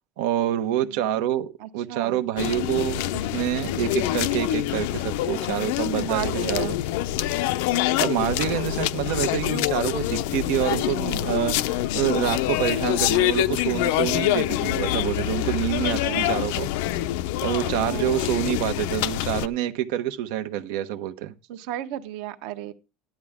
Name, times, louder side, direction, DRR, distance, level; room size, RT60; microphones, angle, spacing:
voice 1, 0.2-6.8 8.0-16.7 17.4-21.3, right 12 dB, 90° right, 1.0 m, -27 dB
voice 2, 1.6-2.2 6.0-6.7 16.0-16.4 17.7-18.3 21.5-22.7, right 13 dB, 65° right, 1.0 m, -34 dB
sound 1, 2.4-19.5, left 14 dB, 85° left, 0.6 m, -25 dB
13.5 x 10.0 x 3.6 m
cardioid pair, 175°, 0 cm